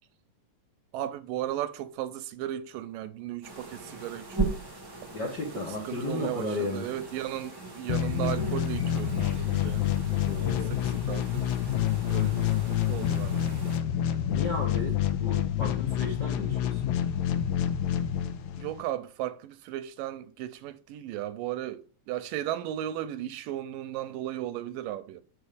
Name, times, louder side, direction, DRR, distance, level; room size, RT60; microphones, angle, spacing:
voice 1, 0.9-4.6 5.8-9.8 10.7-11.5 12.1-13.5 18.6-25.2, right 12 dB, 80° right, 2.2 m, -35 dB
sound 1, 3.4-13.8, right 3 dB, 20° right, 0.6 m, -39 dB
voice 2, 5.1-6.9 10.3-10.8 14.2-16.9, left 2 dB, 55° left, 1.2 m, -34 dB
sound 2, 7.9-18.8, left 10 dB, 80° left, 2.5 m, -28 dB
8.2 x 5.6 x 5.1 m
omnidirectional pair, 4.1 m